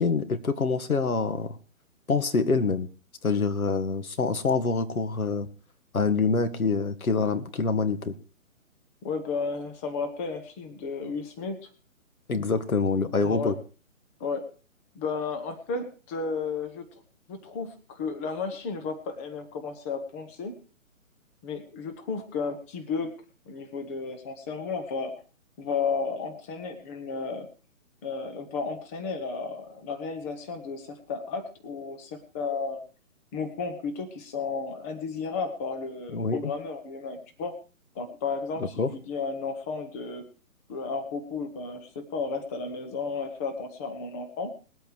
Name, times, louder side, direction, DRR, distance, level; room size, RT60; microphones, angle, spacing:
voice 1, 0.0-1.6 2.1-2.9 3.2-5.5 5.9-8.1 12.3-13.5 36.1-36.5 38.6-38.9, left 4 dB, 85° left, 10 dB, 2.1 m, -26 dB
voice 2, 9.0-11.7 13.2-13.5 14.2-14.5 14.9-16.9 17.3-20.5 21.4-25.1 25.6-27.5 28.0-32.8 33.3-37.5 37.9-40.3 40.7-44.5, left 4 dB, 10° left, 6 dB, 0.8 m, -33 dB
20.0 x 8.3 x 4.8 m, 0.37 s
hypercardioid pair, 155°, 41 cm